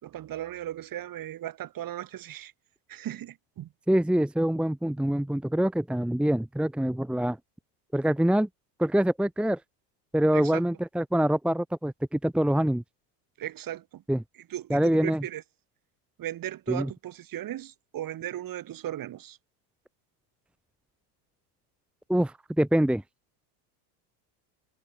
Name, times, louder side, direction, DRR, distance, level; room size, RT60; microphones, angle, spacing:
voice 1, 0.0-2.5 2.9-3.7 10.3-10.6 13.4-14.0 14.5-15.4 16.2-19.4, right 12 dB, 40° right, 3.7 m, -37 dB
voice 2, 3.9-7.4 7.9-8.5 8.8-9.6 10.1-12.8 14.1-14.2 14.7-15.2 16.7-16.9 22.1-23.0, right 1 dB, ahead, 1.1 m, -25 dB
supercardioid pair, 115°, 50 cm